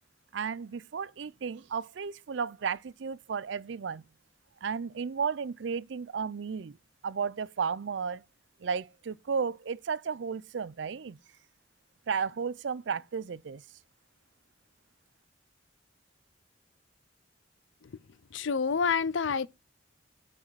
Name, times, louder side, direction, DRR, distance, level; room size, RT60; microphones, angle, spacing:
voice 1, 0.3-4.0 4.6-6.8 7.0-8.2 8.6-11.2 12.1-13.6, right 6 dB, 70° right, 0.4 m, -33 dB
voice 2, 18.3-19.5, left 5 dB, 75° left, 0.5 m, -27 dB
7.3 x 6.0 x 4.7 m
head